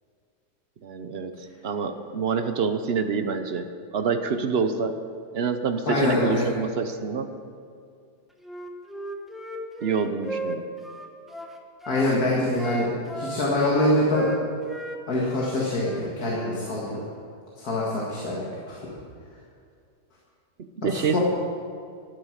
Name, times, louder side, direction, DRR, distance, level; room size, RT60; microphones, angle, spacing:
voice 1, 0.8-1.4 1.6-5.0 5.3-7.4 9.8-10.7 20.6-21.2, right 5 dB, 55° right, 8 dB, 0.8 m, -27 dB
voice 2, 5.9-6.5 11.9-12.9 13.1-14.3 15.1-17.0 17.6-18.4 18.7-18.9 21.1-21.2, left 1 dB, 65° left, -4 dB, 2.3 m, -24 dB
Wind instrument woodwind instrument, 8.4-12.1 12.5-15.0 15.3-16.6, equal, ahead, 0.7 m, -35 dB
13.0 x 9.5 x 6.5 m, 2.3 s
omnidirectional pair, 1.8 m